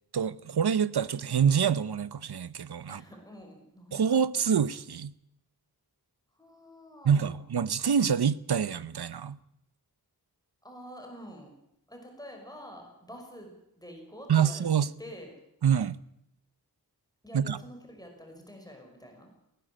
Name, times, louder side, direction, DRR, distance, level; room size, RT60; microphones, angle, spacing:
voice 1, 0.1-3.0 3.9-5.1 7.0-9.4 14.3-14.9 15.6-16.0 17.3-17.6, right 7 dB, 75° right, 0.8 m, -26 dB
voice 2, 2.9-4.5 6.4-7.4 10.6-11.5 11.9-14.6 15.0-15.3 17.2-19.3, equal, 10° left, 6.1 m, -47 dB
20.0 x 18.0 x 8.9 m
wide cardioid pair, 75°, 39 cm